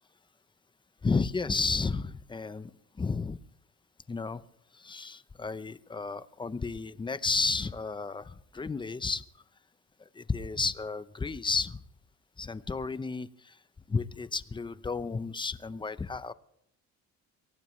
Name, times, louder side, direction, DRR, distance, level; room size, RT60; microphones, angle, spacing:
voice 1, 1.0-2.7 3.0-3.4 4.1-4.4 4.8-9.2 10.1-11.8 12.4-13.6 13.9-16.3, left 4 dB, 15° left, 14 dB, 0.7 m, -32 dB
24.0 x 17.5 x 3.2 m, 0.75 s
cardioid pair, 135°, 30 cm